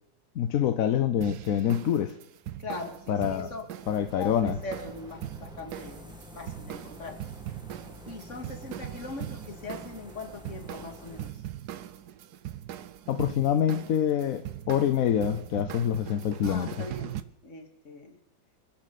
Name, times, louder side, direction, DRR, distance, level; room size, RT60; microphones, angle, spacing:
voice 1, 0.4-2.1 3.1-3.5 3.9-4.6 13.1-16.7, left 9 dB, 60° left, 9 dB, 1.0 m, -26 dB
sound 1, 1.2-17.2, right 11 dB, 70° right, 1.2 m, -41 dB
voice 2, 2.6-3.7 4.2-7.2 8.1-11.4 16.4-17.1 17.4-18.2, left 3 dB, 40° left, 5 dB, 2.2 m, -40 dB
sound 2, 3.8-11.3, left 1 dB, ahead, 1.6 m, -48 dB
27.5 x 10.0 x 4.1 m, 0.77 s
omnidirectional pair, 2.0 m